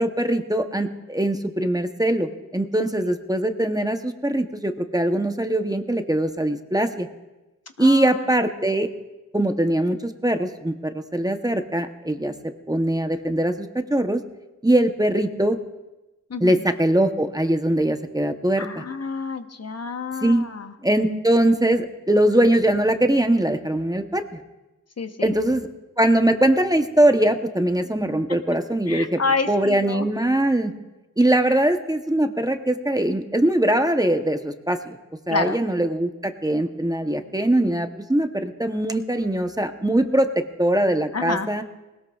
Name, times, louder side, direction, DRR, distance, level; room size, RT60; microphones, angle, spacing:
voice 1, 0.0-7.1 7.8-8.9 9.3-14.2 14.6-15.6 16.4-18.8 20.2-20.4 20.8-24.4 25.2-25.7 26.0-29.2 29.5-30.7 31.2-34.8 35.3-41.6, right 1 dB, 10° right, 7 dB, 0.8 m, -21 dB
voice 2, 2.8-3.1 7.8-8.4 16.3-16.6 18.6-20.7 25.0-25.3 28.9-30.1 31.5-31.6 35.3-35.6 41.1-41.5, left 4 dB, 55° left, 7 dB, 0.9 m, -29 dB
20.5 x 18.0 x 2.4 m, 1.0 s
wide cardioid pair, 90°, 31 cm